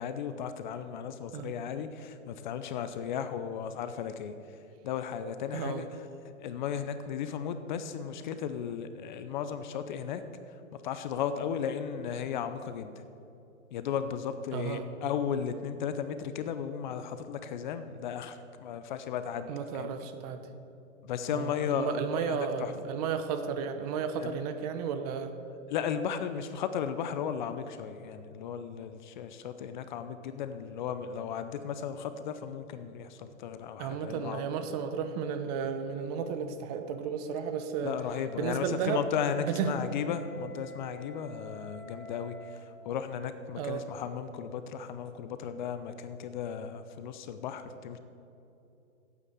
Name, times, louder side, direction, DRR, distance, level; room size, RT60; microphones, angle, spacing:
voice 1, 0.0-4.3 4.8-6.1 6.4-10.2 10.8-12.9 13.7-19.9 21.0-22.7 24.2-24.4 25.7-34.4 37.8-48.0, left 7 dB, 35° left, 10 dB, 0.6 m, -35 dB
voice 2, 5.5-5.8 14.5-14.9 19.5-20.4 21.3-25.3 33.8-38.0 38.4-39.0 39.5-39.8 43.6-43.8, right 7 dB, 30° right, 8 dB, 0.8 m, -33 dB
Wind instrument woodwind instrument, 38.0-42.7, left 2 dB, 85° left, 2.1 m, -49 dB
8.9 x 8.6 x 8.2 m, 2.8 s
hypercardioid pair, 135°, 40 cm